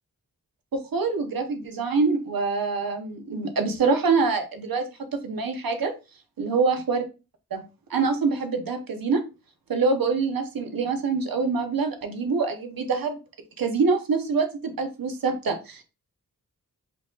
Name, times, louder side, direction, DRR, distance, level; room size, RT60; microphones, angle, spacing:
voice 1, 0.7-4.8 5.1-5.9 6.4-7.0 7.5-7.6 7.9-9.2 9.7-13.2 13.6-15.8, right 4 dB, 75° right, 6 dB, 0.9 m, -25 dB
5.0 x 2.4 x 3.7 m, 0.29 s
wide cardioid pair, 115°, 35 cm